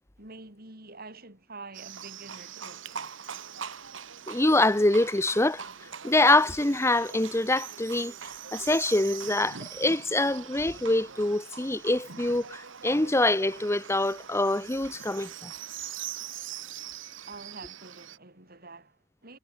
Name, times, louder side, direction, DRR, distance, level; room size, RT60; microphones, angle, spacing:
voice 1, 0.2-3.1 17.3-19.4, right 3 dB, 50° right, 7.4 m, -47 dB
Livestock farm animals working animals, 1.7-18.2, right 8 dB, 85° right, 1.8 m, -42 dB
voice 2, 4.3-5.6 6.0-8.1 8.5-15.5, left 2 dB, 15° left, 1.1 m, -25 dB
head